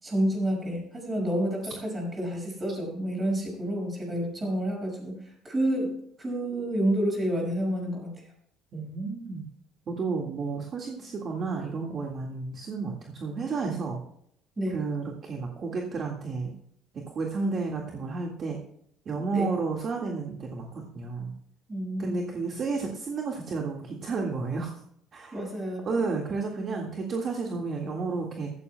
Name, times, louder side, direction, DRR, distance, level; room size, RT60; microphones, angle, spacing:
voice 1, 0.0-5.2 5.4-8.1 14.6-14.8 19.2-19.5 21.7-22.2 25.3-25.8, right 1 dB, 20° right, 0 dB, 5.9 m, -29 dB
voice 2, 8.7-9.5 9.9-14.0 14.7-16.5 16.9-18.6 19.1-21.3 22.0-24.8 25.1-25.5 25.9-28.5, right 4 dB, 35° right, 1 dB, 1.8 m, -32 dB
15.5 x 14.0 x 2.2 m, 0.70 s
cardioid pair, 140°, 0 cm